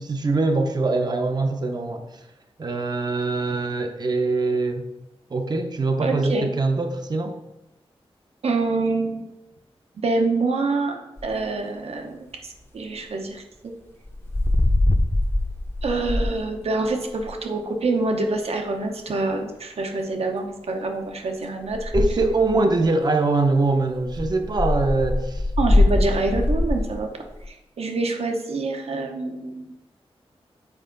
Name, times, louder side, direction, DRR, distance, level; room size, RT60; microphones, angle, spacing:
voice 1, 0.0-2.2 2.6-4.9 5.3-7.4 21.9-25.5, right 3 dB, 40° right, 5 dB, 0.6 m, -23 dB
voice 2, 6.0-6.4 8.4-9.2 10.0-13.7 15.8-21.9 25.6-27.1 27.5-29.7, right 3 dB, 80° right, 3 dB, 0.9 m, -26 dB
sound 1, 11.2-11.4 14.1-16.4 16.8-17.4 21.7-22.6 23.9-27.0 27.3-27.4, left 1 dB, 20° left, 0.7 m, -22 dB
8.8 x 4.5 x 3.9 m, 1.0 s
wide cardioid pair, 85°, 10 cm